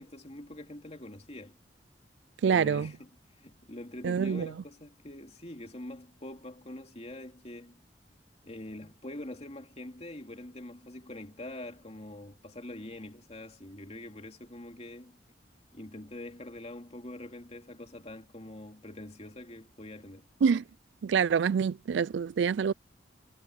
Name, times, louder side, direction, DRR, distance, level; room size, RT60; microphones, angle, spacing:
voice 1, 0.0-1.6 2.4-3.1 3.4-7.8 8.4-15.2 15.7-20.3, left 1 dB, 35° left, 2.6 m, -44 dB
voice 2, 2.4-2.9 4.0-4.5 20.4-20.6 21.0-22.7, right 6 dB, 75° right, 0.4 m, -26 dB
head